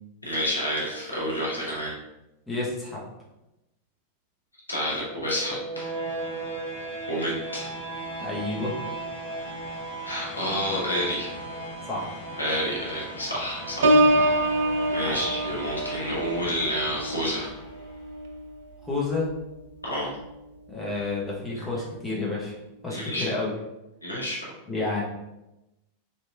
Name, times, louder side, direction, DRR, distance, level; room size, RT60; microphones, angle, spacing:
voice 1, 0.2-1.9 4.7-5.9 7.1-7.7 10.0-11.3 12.4-14.3 14.9-17.5 19.8-20.2 22.9-23.3 24.0-24.4, equal, 80° left, -4 dB, 0.8 m, -29 dB
voice 2, 2.5-3.0 8.2-8.8 11.9-12.2 14.1-14.3 15.0-15.2 18.8-19.3 20.7-22.6 22.8-23.5 24.7-25.0, left 3 dB, 10° left, -5 dB, 0.9 m, -30 dB
sound 1, 5.0-18.0, right 2 dB, 50° left, 1.0 m, -37 dB
Piano, 13.8-19.4 19.9-20.3, right 1 dB, 60° right, 0.3 m, -26 dB
3.0 x 2.7 x 2.3 m, 0.94 s
figure-of-eight pair, 90°, 0 cm